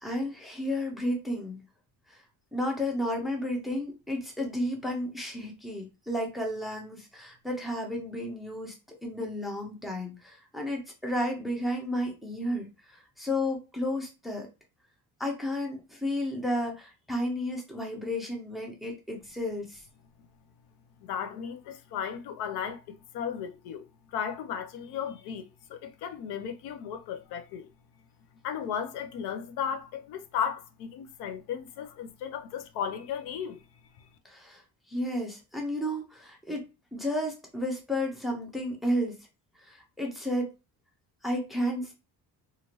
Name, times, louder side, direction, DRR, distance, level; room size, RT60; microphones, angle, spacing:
voice 1, 0.0-1.6 2.1-2.2 2.5-8.7 9.0-14.5 15.2-19.8 34.2-34.6 34.9-39.2 39.6-40.5 41.2-41.9, left 1 dB, ahead, 0.5 m, -32 dB
voice 2, 21.0-27.7 28.4-33.6, left 8 dB, 85° left, 0.6 m, -35 dB
2.7 x 2.5 x 3.0 m
cardioid pair, 155°, 38 cm